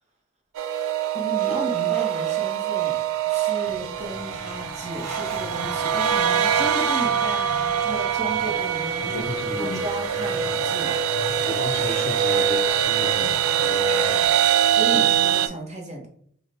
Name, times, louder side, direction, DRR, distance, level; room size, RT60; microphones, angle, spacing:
sound 1, 0.6-15.5, right 8 dB, 90° right, 0.3 m, -23 dB
voice 1, 1.1-3.0 3.3-9.2 9.6-10.9 14.7-16.1, right 1 dB, 35° right, 1 dB, 0.7 m, -34 dB
sound 2, 3.6-15.4, right 1 dB, 70° right, 0.7 m, -41 dB
voice 2, 9.0-9.9 11.4-14.4 14.9-15.0, left 2 dB, 45° left, 5 dB, 0.5 m, -34 dB
3.3 x 2.0 x 4.0 m, 0.62 s
head